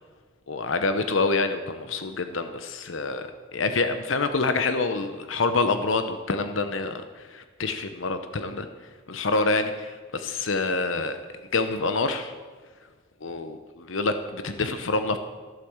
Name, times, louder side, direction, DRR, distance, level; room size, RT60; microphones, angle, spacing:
voice 1, 0.5-8.7 9.1-11.2 11.5-12.3 13.2-15.2, left 3 dB, 85° left, 8 dB, 0.9 m, -27 dB
15.5 x 8.4 x 7.2 m, 1.5 s
head